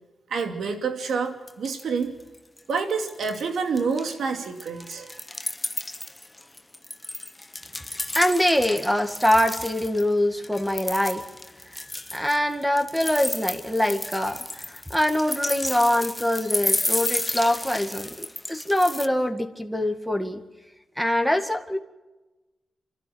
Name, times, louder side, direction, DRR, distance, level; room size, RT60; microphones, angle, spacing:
voice 1, 0.3-2.1 2.7-5.1, right 5 dB, 85° right, 5 dB, 2.6 m, -28 dB
sound 1, 1.1-1.2 1.5-2.0 2.3-3.5 3.8-10.0 10.4-19.1, left 1 dB, 15° left, 0.8 m, -32 dB
voice 2, 8.2-11.2 11.7-11.8 12.1-20.4 21.0-21.8, left 1 dB, 5° right, 6 dB, 2.0 m, -24 dB
28.5 x 12.5 x 8.0 m, 1.1 s
cardioid pair, 85°, 0 cm